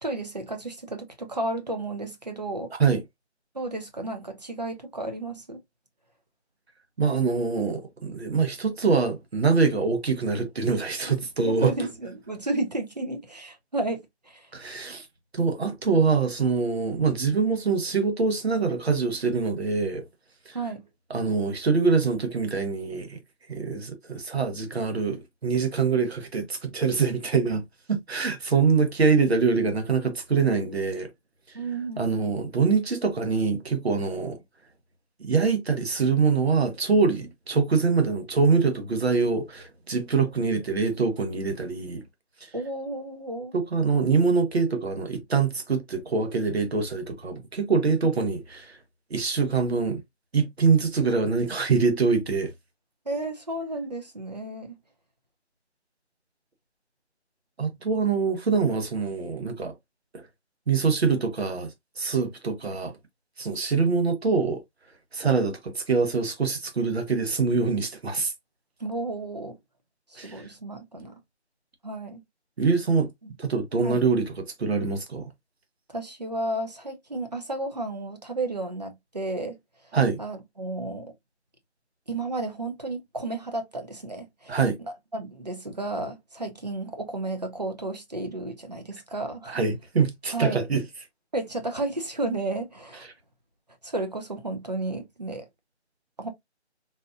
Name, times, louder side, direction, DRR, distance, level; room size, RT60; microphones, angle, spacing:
voice 1, 0.0-2.7 3.5-5.6 11.4-14.5 20.5-20.8 31.5-32.3 42.5-43.5 53.1-54.8 68.8-69.6 70.1-71.1 71.8-72.2 73.8-74.0 75.9-79.6 80.2-81.1 82.1-84.6 85.1-89.6 90.3-90.6 91.3-93.1 93.8-95.5 96.2-96.3, right 2 dB, 40° right, 0.7 m, -32 dB
voice 2, 7.0-11.7 14.5-15.1 15.3-20.0 20.5-20.6 21.1-23.2 23.5-27.6 27.9-31.1 32.0-34.4 35.2-42.0 43.5-48.8 49.1-50.0 50.3-52.5 57.6-59.7 60.1-60.2 60.7-62.9 63.4-64.6 65.1-68.3 70.2-70.4 72.6-73.1 73.4-74.3 74.6-75.3 79.9-80.2 84.5-84.8 89.5-90.8, right 5 dB, 65° right, 1.1 m, -24 dB
4.1 x 2.4 x 2.5 m
figure-of-eight pair, 175°, 34 cm